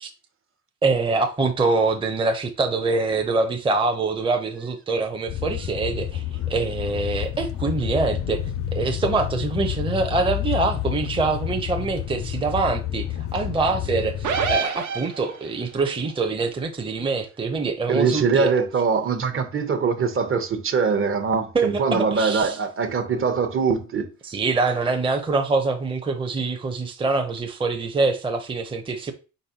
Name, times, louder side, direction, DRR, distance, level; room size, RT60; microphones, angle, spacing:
voice 1, 0.8-18.5 21.5-22.6 24.2-29.1, right 3 dB, 15° right, 0.6 m, -24 dB
sound 1, 5.3-14.6, left 12 dB, 50° left, 0.4 m, -29 dB
sound 2, 14.2-15.6, right 6 dB, 75° right, 0.9 m, -26 dB
voice 2, 17.9-24.1, right 5 dB, 45° right, 0.9 m, -22 dB
4.4 x 4.0 x 2.8 m
cardioid pair, 90°, 30 cm